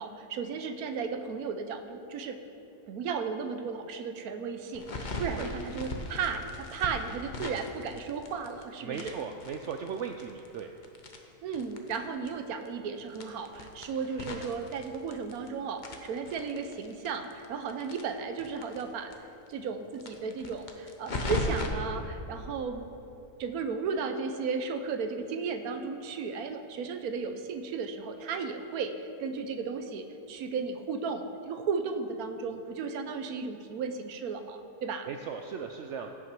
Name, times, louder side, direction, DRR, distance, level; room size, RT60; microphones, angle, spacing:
voice 1, 0.0-2.4 2.9-9.2 11.4-19.1 19.5-22.9 23.4-35.1, right 5 dB, 70° right, 8 dB, 1.1 m, -35 dB
sound 1, 4.7-8.6 8.9-12.0 12.3-12.4 12.6-12.7 13.1-15.5 15.8-18.8 19.1-19.2 19.5-19.6 20.0-21.7, left 2 dB, 40° left, 0.7 m, -37 dB
voice 2, 8.8-10.7 35.1-36.1, right 6 dB, 85° right, 4 dB, 0.6 m, -37 dB
16.5 x 5.8 x 4.7 m, 2.8 s
omnidirectional pair, 1.8 m